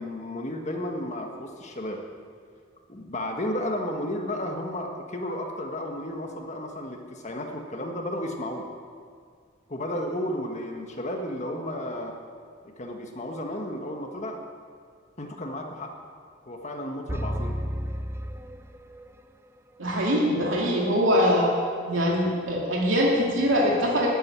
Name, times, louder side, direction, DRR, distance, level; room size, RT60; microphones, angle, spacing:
voice 1, 0.0-2.0 2.9-8.6 9.7-12.1 12.6-14.4 15.2-15.9 16.4-17.6, left 1 dB, 35° left, 2 dB, 1.5 m, -33 dB
sound 1, 17.1-19.2, equal, 10° right, 0.5 m, -32 dB
voice 2, 19.8-21.5 21.8-24.1, equal, 85° right, -3 dB, 2.7 m, -23 dB
13.5 x 9.0 x 9.7 m, 2.1 s
head